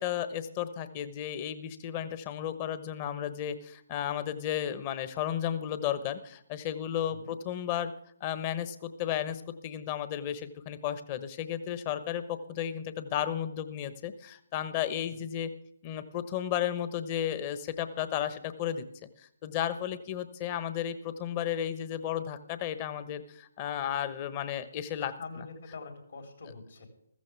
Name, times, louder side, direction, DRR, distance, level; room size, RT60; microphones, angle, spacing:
voice 1, 0.0-7.9 8.2-15.5 15.8-19.1 19.4-25.1, left 10 dB, 30° left, 12 dB, 1.0 m, -33 dB
voice 2, 24.9-26.9, left 4 dB, 65° left, 4 dB, 4.0 m, -45 dB
15.0 x 14.5 x 3.4 m, 0.72 s
figure-of-eight pair, 140°, 0 cm